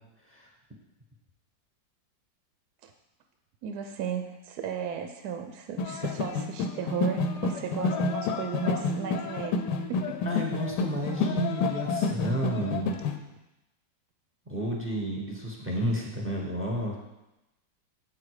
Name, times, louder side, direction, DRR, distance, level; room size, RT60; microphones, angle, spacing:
voice 1, 3.6-9.6 9.9-10.1, right 8 dB, 70° right, 5 dB, 1.1 m, -35 dB
sound 1, 5.8-13.2, left 4 dB, 75° left, 1.2 m, -29 dB
voice 2, 10.2-12.9 14.5-17.0, equal, 10° right, -1 dB, 1.0 m, -31 dB
7.5 x 4.9 x 4.8 m, 0.96 s
omnidirectional pair, 1.9 m